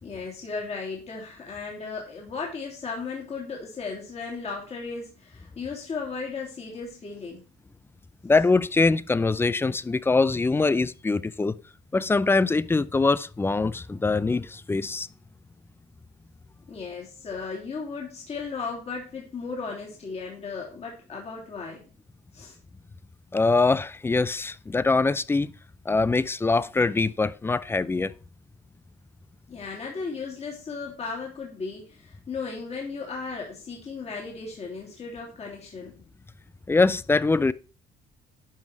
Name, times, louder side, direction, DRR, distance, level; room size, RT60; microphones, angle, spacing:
voice 1, 0.0-7.4 16.7-21.8 22.3-22.6 29.5-36.0, left 4 dB, 40° left, 3.0 m, -35 dB
voice 2, 8.2-11.6 11.9-15.1 23.3-25.5 25.9-28.1 36.7-37.5, left 3 dB, 15° left, 0.4 m, -23 dB
11.0 x 5.3 x 4.6 m
cardioid pair, 110°, 17 cm